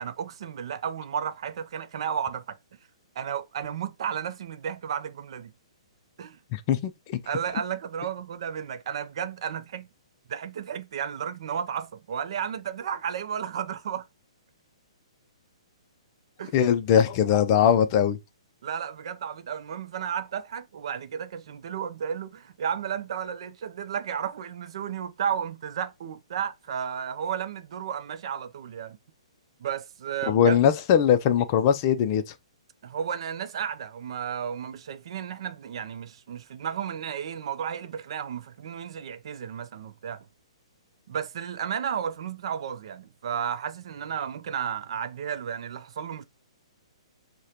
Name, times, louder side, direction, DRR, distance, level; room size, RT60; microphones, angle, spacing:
voice 1, 0.0-2.6 3.2-5.5 6.2-6.4 7.2-9.9 10.3-14.1 16.4-16.5 18.6-29.0 29.6-30.6 32.8-40.3 41.1-46.2, right 8 dB, 55° right, 0.5 m, -33 dB
voice 2, 6.5-7.2 16.5-18.2 30.3-32.2, left 9 dB, 30° left, 0.4 m, -21 dB
6.4 x 2.2 x 2.9 m
hypercardioid pair, 155°, 3 cm